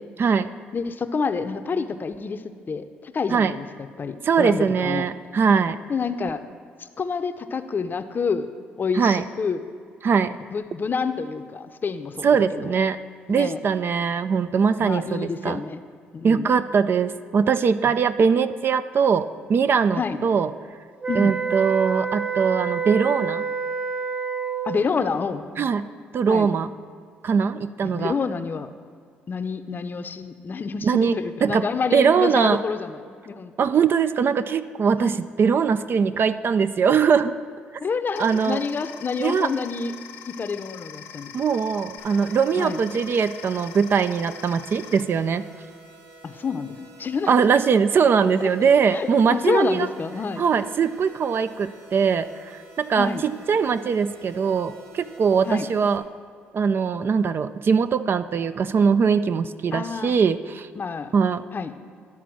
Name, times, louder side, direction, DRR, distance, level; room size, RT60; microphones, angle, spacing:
voice 1, 0.2-0.5 3.3-3.5 4.2-5.8 9.0-9.2 10.0-10.3 12.2-13.0 13.3-15.6 16.2-20.5 21.2-23.4 25.6-25.9 26.1-26.7 27.2-28.1 30.8-31.1 31.4-31.7 31.9-32.6 33.6-37.3 38.2-38.6 39.2-39.5 41.3-45.4 47.3-49.9 50.4-56.0 56.5-60.7 61.1-61.4, right 6 dB, 50° right, 12 dB, 0.4 m, -21 dB
voice 2, 0.7-5.1 5.9-6.4 6.8-8.5 8.8-9.7 10.5-12.7 13.3-13.6 14.8-15.8 16.1-16.5 17.9-18.0 20.0-20.2 21.1-21.3 24.6-25.7 26.3-26.5 27.8-28.7 29.3-33.5 35.0-35.2 37.8-39.9 40.4-41.3 42.6-42.8 46.2-47.3 48.9-50.4 53.0-53.2 55.5-55.7 59.7-60.2 60.8-61.1 61.5-61.7, left 5 dB, 40° left, 10 dB, 0.6 m, -28 dB
sound 1, 21.0-24.9, right 6 dB, 25° right, 0.8 m, -28 dB
sound 2, 38.2-45.0, left 9 dB, 85° left, 0.5 m, -42 dB
sound 3, 42.0-56.0, right 2 dB, 75° right, 1.2 m, -49 dB
12.0 x 4.1 x 6.1 m, 2.1 s
hypercardioid pair, 55°, 5 cm